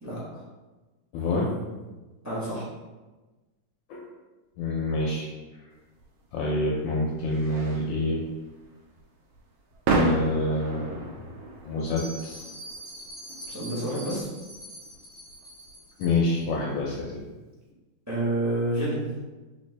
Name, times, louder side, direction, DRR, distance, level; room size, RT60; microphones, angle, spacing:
voice 1, 0.0-0.4 2.2-2.7 13.5-14.3 18.1-19.1, right 1 dB, 15° right, -8 dB, 0.6 m, -29 dB
voice 2, 1.1-1.5 3.9-4.0 4.6-5.3 6.3-8.3 9.9-11.0 11.6-12.4 16.0-17.2, left 2 dB, 75° left, -3 dB, 1.2 m, -27 dB
sound 1, 5.9-17.3, right 3 dB, 85° right, 1.4 m, -34 dB
Bell, 11.8-16.4, equal, 45° left, 0.6 m, -43 dB
3.3 x 3.3 x 3.2 m, 1.2 s
omnidirectional pair, 2.3 m